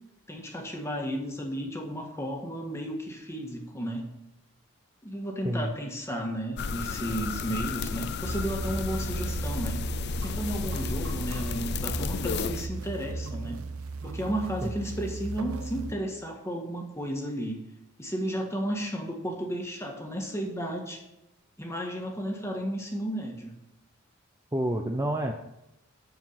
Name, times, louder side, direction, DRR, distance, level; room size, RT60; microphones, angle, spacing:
voice 1, 0.3-4.1 5.0-9.8 10.2-13.6 14.0-17.7 18.0-21.0 21.6-23.5, equal, 15° left, 1 dB, 1.6 m, -33 dB
sound 1, 6.6-12.7, left 5 dB, 50° left, 0.5 m, -33 dB
sound 2, 8.2-15.9, right 3 dB, 85° right, 0.8 m, -36 dB
voice 2, 24.5-25.3, right 1 dB, 15° right, 3 dB, 0.6 m, -28 dB
13.5 x 4.7 x 5.8 m, 0.89 s
head